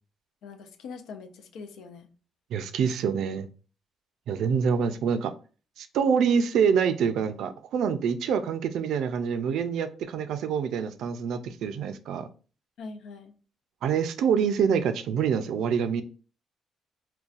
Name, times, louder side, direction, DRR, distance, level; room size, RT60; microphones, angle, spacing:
voice 1, 0.4-2.1 12.8-13.3, left 4 dB, 85° left, 6 dB, 0.5 m, -42 dB
voice 2, 2.5-3.5 4.3-5.3 5.8-12.3 13.8-16.0, right 7 dB, 80° right, 9 dB, 0.4 m, -26 dB
3.9 x 2.2 x 2.4 m, 0.36 s
cardioid pair, 90°, 0 cm